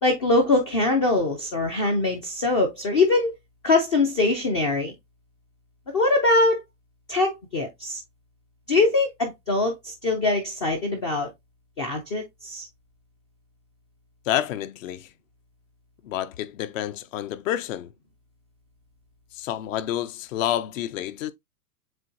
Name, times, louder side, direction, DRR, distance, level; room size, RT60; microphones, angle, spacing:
voice 1, 0.0-3.3 3.6-4.9 5.9-6.6 7.1-8.0 8.7-11.3 11.8-12.7, left 2 dB, 20° left, 0.3 m, -22 dB
voice 2, 14.3-15.1 16.0-17.9 19.3-21.3, left 12 dB, 55° left, 0.7 m, -29 dB
7.5 x 2.7 x 2.6 m
supercardioid pair, 150°, 47 cm